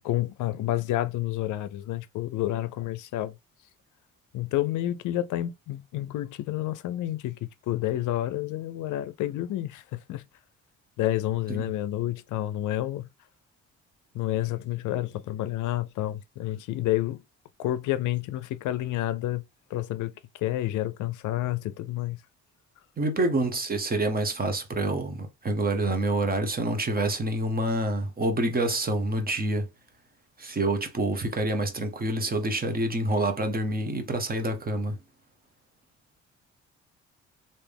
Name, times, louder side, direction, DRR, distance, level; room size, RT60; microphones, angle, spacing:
voice 1, 0.0-3.3 4.3-10.2 11.0-13.1 14.1-17.2 17.6-19.4 19.7-22.2, left 14 dB, 80° left, 0.5 m, -29 dB
voice 2, 23.0-29.7 30.4-35.0, right 2 dB, 30° right, 0.9 m, -27 dB
3.3 x 2.7 x 3.4 m
cardioid pair, 90°, 30 cm